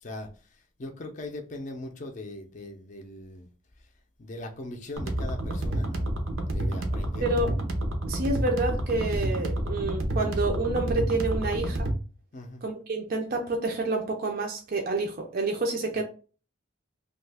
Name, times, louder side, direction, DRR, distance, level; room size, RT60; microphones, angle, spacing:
voice 1, 0.0-3.5 4.2-6.1 6.5-7.2 12.3-12.6 15.9-16.0, left 1 dB, 40° left, 0.4 m, -40 dB
sound 1, 5.0-12.0, right 1 dB, 90° right, 0.7 m, -29 dB
voice 2, 7.2-7.5 8.1-11.9 12.6-16.0, right 2 dB, 50° right, 0.4 m, -28 dB
2.7 x 2.3 x 3.3 m
head